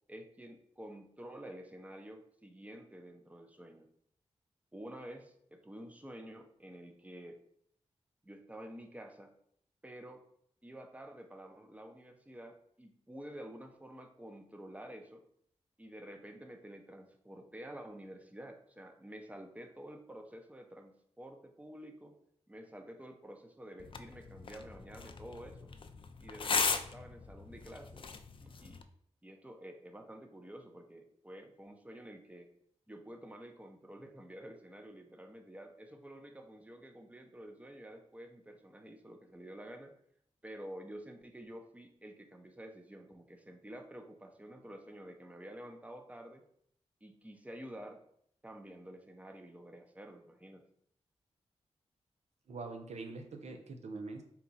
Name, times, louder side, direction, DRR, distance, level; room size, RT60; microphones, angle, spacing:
voice 1, 0.1-3.9 4.7-7.4 8.2-9.3 9.8-10.2 10.6-15.2 15.8-22.2 22.5-25.7 26.2-28.0 28.4-28.8 29.2-32.5 32.9-39.9 40.4-46.4 47.0-48.0 48.4-50.6, right 1 dB, 10° right, 5 dB, 0.7 m, -50 dB
sound 1, 23.8-28.8, left 5 dB, 50° left, 0.4 m, -38 dB
voice 2, 52.5-54.2, right 3 dB, 75° right, 5 dB, 0.6 m, -43 dB
4.2 x 2.3 x 4.0 m, 0.68 s
cardioid pair, 50°, 12 cm